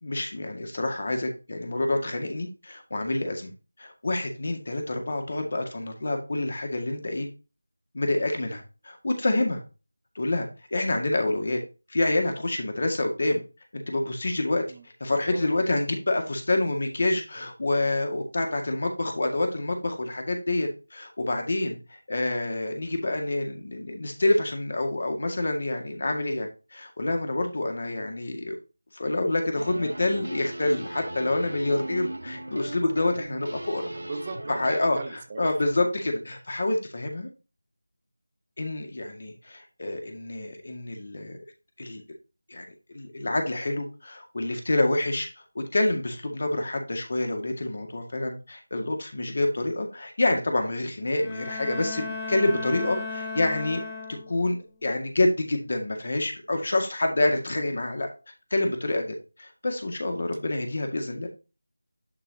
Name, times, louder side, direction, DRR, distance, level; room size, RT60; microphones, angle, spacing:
voice 1, 0.0-3.5 3.8-7.3 7.9-9.6 10.2-11.6 11.9-13.4 13.7-14.6 15.0-28.6 28.9-33.8 34.5-35.0 35.4-37.3 38.6-41.4 41.8-42.0 42.5-42.6 42.9-45.3 45.6-53.8 54.3-58.1 58.5-61.3, left 2 dB, 50° left, 3 dB, 1.9 m, -27 dB
sound 1, 29.5-34.8, right 1 dB, 80° right, 1.2 m, -38 dB
voice 2, 33.9-35.6, right 3 dB, 25° right, 5 dB, 1.1 m, -39 dB
Bowed string instrument, 51.1-54.5, left 3 dB, 15° left, 0.7 m, -35 dB
11.0 x 4.7 x 2.8 m, 0.31 s
figure-of-eight pair, 170°, 0 cm